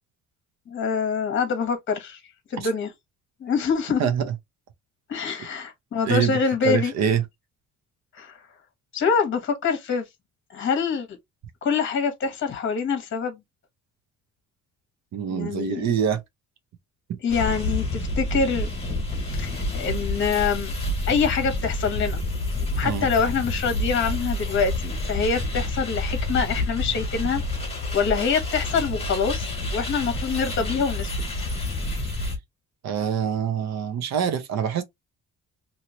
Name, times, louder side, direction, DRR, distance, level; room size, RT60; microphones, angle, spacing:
voice 1, 0.7-2.2 2.5-2.9 3.4-4.0 5.1-6.9 8.1-8.4 8.9-10.0 10.5-11.1 11.6-13.4 15.3-15.8 17.2-18.7 19.4-20.7 21.1-22.2 22.8-27.4 27.9-29.5 29.7-31.1, left 5 dB, 40° left, 1.1 m, -25 dB
voice 2, 4.0-4.3 6.0-6.4 6.6-7.2 15.1-16.2 17.1-17.2 22.8-23.1 32.1-32.2 32.8-34.8, right 8 dB, 60° right, 0.8 m, -25 dB
sound 1, 17.3-32.4, left 1 dB, 20° left, 1.4 m, -28 dB
3.0 x 2.8 x 2.8 m
cardioid pair, 150°, 30 cm